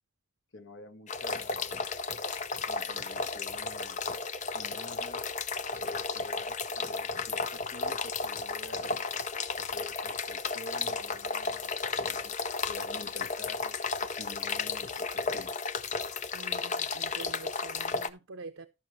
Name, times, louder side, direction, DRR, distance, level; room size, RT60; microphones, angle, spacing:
voice 1, 0.5-1.7 2.6-4.0 4.5-5.3 5.7-9.0 9.7-12.4 12.7-15.5, left 3 dB, 65° left, 1.4 m, -48 dB
sound 1, 1.1-18.1, left 4 dB, 35° left, 0.7 m, -34 dB
voice 2, 16.3-18.7, right 3 dB, 75° right, 0.7 m, -46 dB
14.5 x 5.8 x 3.1 m
head